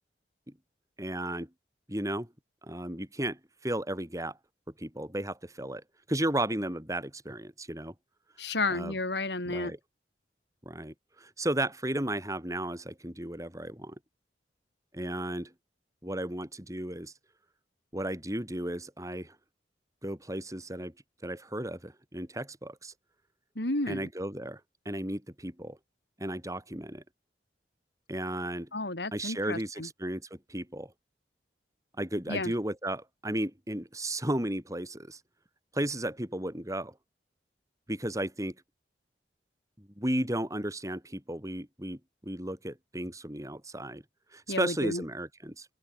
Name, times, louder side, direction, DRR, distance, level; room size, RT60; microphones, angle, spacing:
voice 1, 1.0-1.5 1.9-2.3 2.6-4.4 4.8-7.9 8.7-8.9 9.5-9.8 10.6-13.9 14.9-15.5 16.0-17.1 17.9-19.3 20.0-20.9 21.2-22.9 23.9-24.6 24.8-25.8 26.2-27.0 28.1-28.7 29.1-30.9 32.0-35.2 35.7-36.9 37.9-38.5 39.8-44.0 44.3-45.7, right 1 dB, 20° right, 6.5 m, -34 dB
voice 2, 8.4-9.7 23.6-24.1 28.7-29.9 32.3-32.5 44.5-45.0, left 2 dB, 75° left, 3.7 m, -32 dB
open air
head